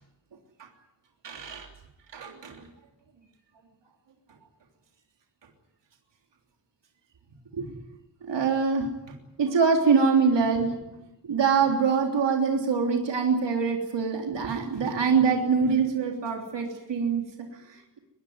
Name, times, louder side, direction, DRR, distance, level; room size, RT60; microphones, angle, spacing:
voice 1, 1.2-1.7 2.1-2.7 7.5-7.8 8.2-8.9 9.4-10.7 11.2-18.0, right 5 dB, 80° right, 2 dB, 3.5 m, -24 dB
24.0 x 21.0 x 9.5 m, 0.91 s
wide cardioid pair, 160°, 42 cm